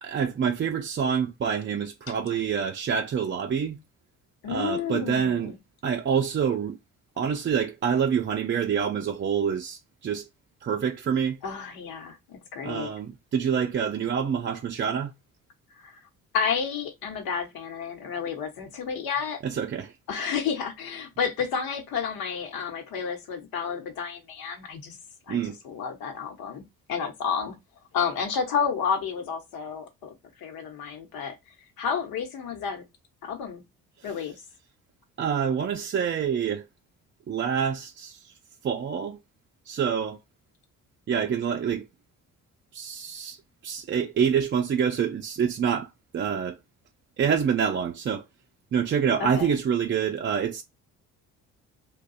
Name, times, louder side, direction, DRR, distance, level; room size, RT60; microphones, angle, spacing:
voice 1, 0.0-3.8 4.5-5.5 5.8-6.8 7.2-10.3 10.6-11.4 12.6-15.1 19.4-19.9 25.3-25.6 35.2-36.7 37.3-38.3 38.6-39.2 39.7-40.2 41.1-41.9 42.7-43.4 43.6-45.9 46.1-46.6 47.2-48.2 48.7-50.6, right 7 dB, 30° right, 0.4 m, -26 dB
voice 2, 4.4-5.6 11.4-12.9 15.8-16.0 16.3-19.4 20.1-25.0 25.3-26.6 26.9-27.6 27.9-31.3 31.8-32.8 33.2-33.6 34.0-34.4 49.2-49.6, left 6 dB, 70° left, 1.0 m, -31 dB
2.6 x 2.3 x 3.9 m
hypercardioid pair, 60°, 38 cm